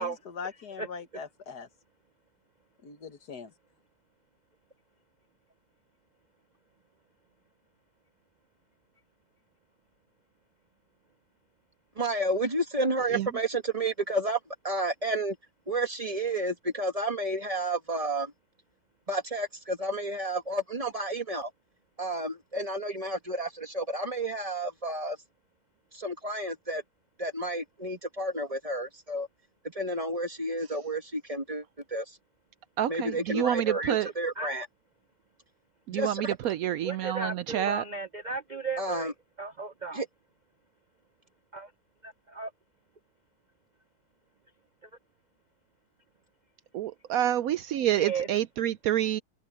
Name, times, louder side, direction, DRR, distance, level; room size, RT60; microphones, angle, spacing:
voice 1, 0.0-1.7 2.8-3.5, left 6 dB, 75° left, 2.0 m, -41 dB
voice 2, 12.0-14.4 14.6-15.4 15.7-18.3 19.1-21.5 22.0-25.2 25.9-26.8 27.2-29.3 29.6-32.2 32.9-34.7 35.9-36.4 38.8-39.1 39.9-40.1, right 1 dB, 20° right, 1.8 m, -31 dB
voice 3, 32.8-34.1 35.9-37.8 46.7-49.2, right 11 dB, 70° right, 0.9 m, -28 dB
voice 4, 36.8-39.1 39.4-40.0 41.5-41.7 42.0-42.5 47.9-48.3, right 4 dB, 40° right, 0.7 m, -35 dB
omnidirectional pair, 1.7 m